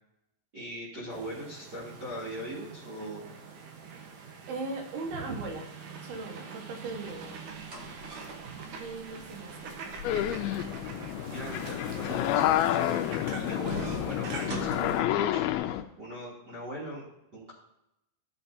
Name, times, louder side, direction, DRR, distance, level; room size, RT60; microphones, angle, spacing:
voice 1, 0.5-3.3 7.7-8.0 11.3-13.0 13.3-17.5, equal, 30° right, -8 dB, 3.1 m, -40 dB
sound 1, 1.1-15.0, right 5 dB, 65° right, 2.5 m, -44 dB
voice 2, 4.5-5.6 6.0-7.4 8.8-10.0 10.6-10.8, right 3 dB, 90° right, 1 dB, 3.6 m, -39 dB
sound 2, 7.2-15.5, right 1 dB, 50° right, 1.3 m, -45 dB
sound 3, 10.0-15.8, left 12 dB, 85° left, 2.5 m, -29 dB
15.0 x 7.8 x 2.8 m, 0.86 s
omnidirectional pair, 4.3 m